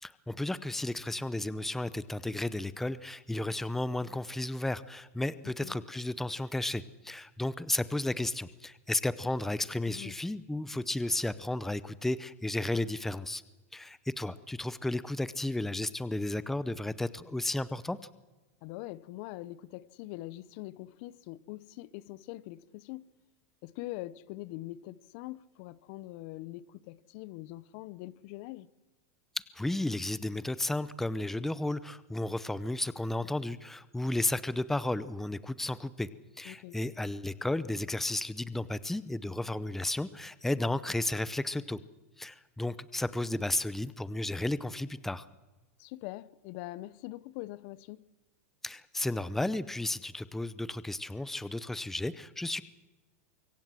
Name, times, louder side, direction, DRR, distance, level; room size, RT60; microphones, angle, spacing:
voice 1, 0.0-13.4 13.7-18.0 29.4-36.1 36.4-41.8 42.2-45.2 48.6-52.6, left 2 dB, 5° left, 0.6 m, -33 dB
voice 2, 5.4-5.8 9.9-10.2 18.6-23.1 23.6-28.7 36.1-36.2 36.4-36.8 45.8-48.1, left 17 dB, 55° left, 0.7 m, -43 dB
24.5 x 16.0 x 7.6 m
supercardioid pair, 135°, 8 cm